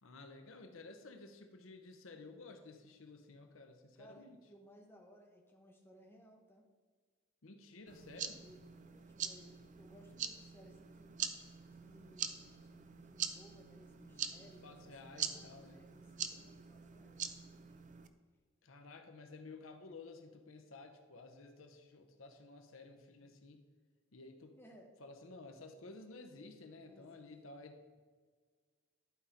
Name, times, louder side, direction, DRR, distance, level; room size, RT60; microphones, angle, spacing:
voice 1, 0.0-4.4 7.4-8.4 14.0-15.8 18.6-23.7 24.1-24.6 25.0-28.0, left 3 dB, 80° left, 6 dB, 0.8 m, -54 dB
voice 2, 3.9-6.6 8.3-11.2 11.7-17.7 24.6-24.9 26.8-27.3, equal, 10° left, 1 dB, 1.1 m, -62 dB
sound 1, 7.9-18.1, right 8 dB, 40° right, 0.5 m, -44 dB
11.5 x 4.2 x 5.2 m, 1.5 s
head